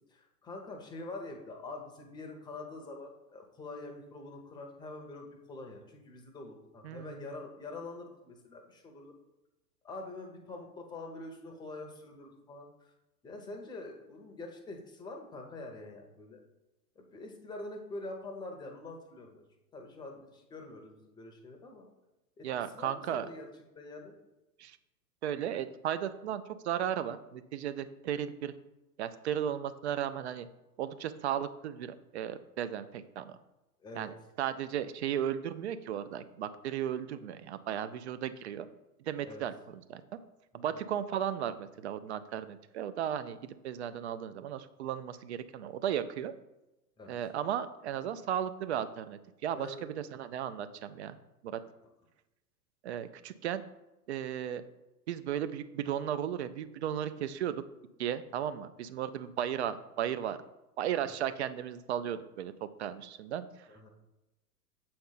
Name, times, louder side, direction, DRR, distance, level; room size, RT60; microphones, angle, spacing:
voice 1, 0.1-9.1 9.8-12.9 13.2-16.4 17.0-19.4 19.7-21.9 22.4-22.5 22.7-23.5 23.7-24.1 33.8-34.1 39.2-39.4 40.5-40.6 47.0-47.1 49.5-49.9 63.7-63.9, left 2 dB, 10° left, 2 dB, 0.7 m, -45 dB
voice 2, 6.8-7.3 22.4-23.3 24.6-24.8 25.2-28.5 29.0-30.5 30.8-33.4 33.9-38.7 39.1-40.2 40.5-46.3 47.1-51.1 51.4-51.6 52.8-53.6 54.1-54.6 55.1-57.6 58.0-60.4 60.8-63.7, right 10 dB, 45° right, 12 dB, 0.4 m, -35 dB
7.4 x 4.3 x 3.9 m, 0.97 s
figure-of-eight pair, 100°, 48 cm